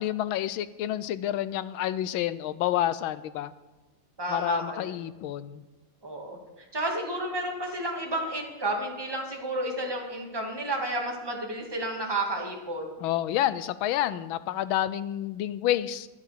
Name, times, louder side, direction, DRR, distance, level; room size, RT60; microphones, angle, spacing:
voice 1, 0.0-3.5 4.3-5.6 13.0-16.1, left 12 dB, 75° left, 15 dB, 1.3 m, -29 dB
voice 2, 4.2-4.9 6.0-6.4 6.7-12.9, right 1 dB, 10° right, 0 dB, 1.8 m, -31 dB
11.0 x 9.9 x 6.6 m, 1.1 s
omnidirectional pair, 2.4 m